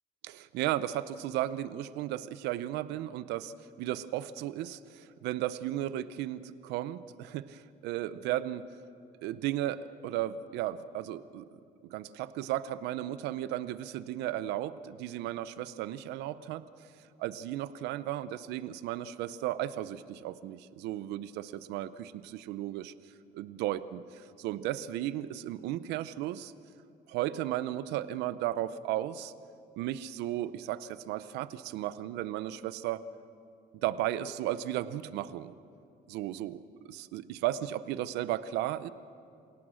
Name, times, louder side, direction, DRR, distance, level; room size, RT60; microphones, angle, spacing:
voice 1, 0.2-8.6 9.2-11.5 11.9-16.9 17.2-22.9 23.3-26.5 27.1-29.3 29.8-33.0 33.8-35.5 36.1-38.9, right 13 dB, 90° right, 15 dB, 0.7 m, -35 dB
27.5 x 17.5 x 6.4 m, 2.5 s
cardioid pair, 110°, 17 cm